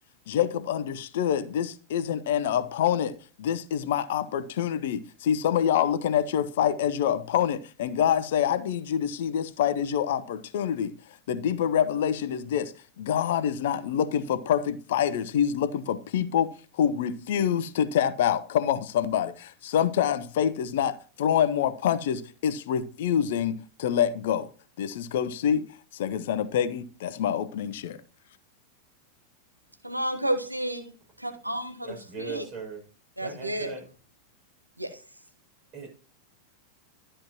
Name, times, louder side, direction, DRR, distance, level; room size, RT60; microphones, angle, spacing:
voice 1, 0.3-10.9 11.3-24.5 24.8-28.0, left 9 dB, 55° left, 0.8 m, -26 dB
voice 2, 29.8-30.9 31.2-32.4 33.2-33.7 34.8-35.0, right 1 dB, 85° right, 1.2 m, -31 dB
voice 3, 31.8-32.8 33.2-33.9 35.7-35.9, right 4 dB, 35° right, 6.4 m, -38 dB
13.0 x 9.9 x 3.0 m
figure-of-eight pair, 90°, 0 cm